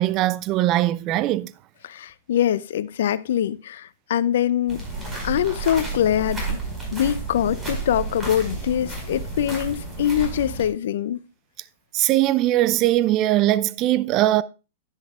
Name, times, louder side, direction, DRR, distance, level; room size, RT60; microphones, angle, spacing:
voice 1, 0.0-1.5 11.9-14.4, right 15 dB, 40° right, 0.5 m, -20 dB
voice 2, 1.8-4.8 5.2-6.6 6.9-11.2, left 10 dB, 65° left, 0.5 m, -23 dB
sound 1, 4.7-10.7, right 3 dB, 20° right, 5.0 m, -31 dB
10.5 x 10.5 x 2.4 m
hypercardioid pair, 110°, 0 cm